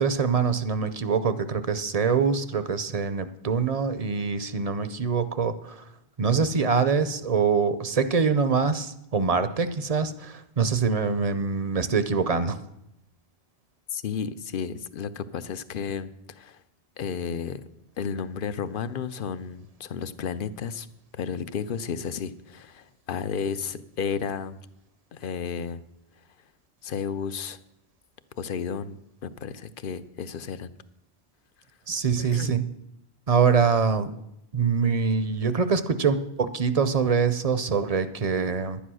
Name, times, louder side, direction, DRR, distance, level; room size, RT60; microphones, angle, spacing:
voice 1, 0.0-5.8 6.2-12.6 31.9-32.6 33.3-34.1 34.5-38.8, right 5 dB, 40° right, 12 dB, 0.7 m, -24 dB
voice 2, 13.9-16.6 17.0-17.6 18.0-20.9 21.1-24.6 25.1-25.8 26.8-27.6 28.4-30.7 32.2-32.6, left 6 dB, 60° left, 14 dB, 0.8 m, -32 dB
10.5 x 10.0 x 6.2 m, 0.82 s
omnidirectional pair, 1.1 m